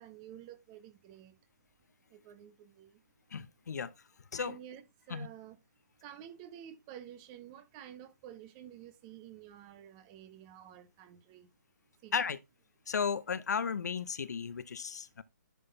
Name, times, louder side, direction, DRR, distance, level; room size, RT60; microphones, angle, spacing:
voice 1, 0.0-1.3 2.1-2.9 4.4-5.6 6.0-11.5 12.0-12.1, right 10 dB, 25° right, 0.9 m, -51 dB
voice 2, 3.3-3.9 4.3-4.6 5.1-5.3 12.1-12.4 12.9-15.2, left 6 dB, 65° left, 0.8 m, -34 dB
10.5 x 3.7 x 4.2 m
hypercardioid pair, 145°, 10 cm